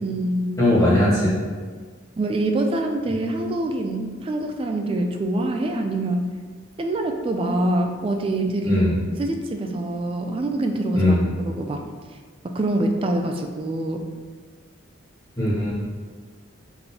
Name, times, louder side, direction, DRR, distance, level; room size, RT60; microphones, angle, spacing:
voice 1, 0.0-0.5 2.2-6.2 6.8-11.2 11.4-11.8 12.4-14.0, right 1 dB, 30° right, 4 dB, 0.3 m, -25 dB
voice 2, 0.6-1.3 8.6-8.9 10.9-11.2 15.4-15.7, left 1 dB, 20° left, -9 dB, 1.4 m, -19 dB
3.9 x 3.8 x 2.8 m, 1.5 s
head